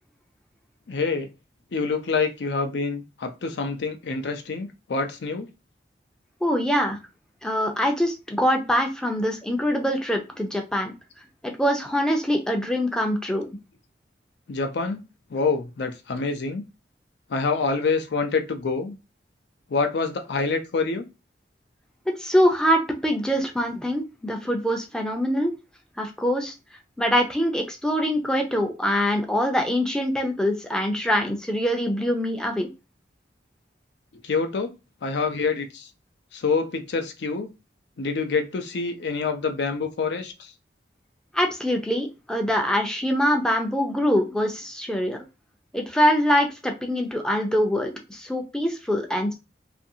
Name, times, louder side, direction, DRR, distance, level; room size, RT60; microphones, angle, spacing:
voice 1, 0.9-1.3 1.7-5.5 14.5-15.0 15.3-16.6 17.3-19.0 19.7-21.1 34.2-34.7 35.0-35.9 36.3-37.5 38.0-40.5, left 4 dB, 75° left, 6 dB, 0.5 m, -26 dB
voice 2, 6.4-7.0 7.4-10.9 11.4-13.5 22.1-25.5 26.0-26.5 27.0-32.7 41.3-45.2 45.7-49.3, equal, 5° left, 2 dB, 0.4 m, -24 dB
2.7 x 2.5 x 2.6 m, 0.28 s
head